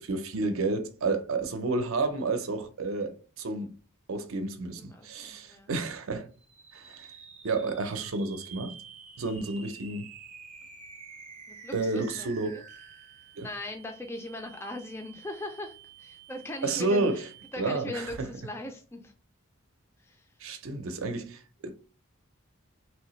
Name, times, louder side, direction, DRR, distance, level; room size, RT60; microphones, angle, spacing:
voice 1, 0.0-3.7 4.1-6.3 6.7-7.1 7.4-8.7 9.2-10.1 11.7-12.6 13.4-13.5 16.6-17.3 17.6-18.3 20.4-21.7, right 3 dB, 75° right, 0.6 m, -31 dB
voice 2, 4.8-5.7 11.5-12.6 13.4-17.1 17.5-19.1 20.0-20.2, left 1 dB, 10° left, 0.3 m, -39 dB
sound 1, 6.3-17.9, right 6 dB, 35° right, 0.7 m, -50 dB
3.2 x 2.7 x 3.0 m
head